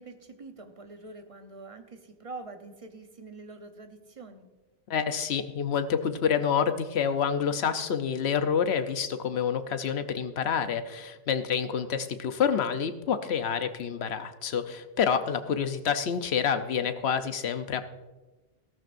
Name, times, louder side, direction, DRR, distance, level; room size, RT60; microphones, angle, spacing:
voice 1, 0.0-4.5, right 3 dB, 35° right, 6 dB, 0.9 m, -45 dB
voice 2, 4.9-17.9, left 7 dB, 80° left, 10 dB, 1.0 m, -28 dB
15.0 x 13.5 x 2.6 m, 1.2 s
omnidirectional pair, 1.1 m